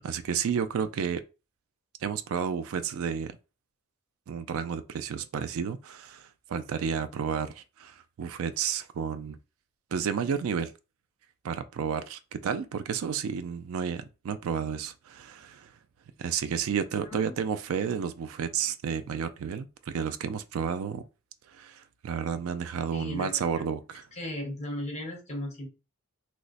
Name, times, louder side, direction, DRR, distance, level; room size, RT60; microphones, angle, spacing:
voice 1, 0.0-1.2 2.0-3.4 4.3-9.4 9.9-10.7 11.4-15.7 16.2-21.0 21.5-24.1, right 7 dB, 65° right, 0.3 m, -31 dB
voice 2, 17.0-17.3 22.9-23.6 24.1-25.7, left 1 dB, 30° left, 0.9 m, -36 dB
3.1 x 2.0 x 3.9 m
head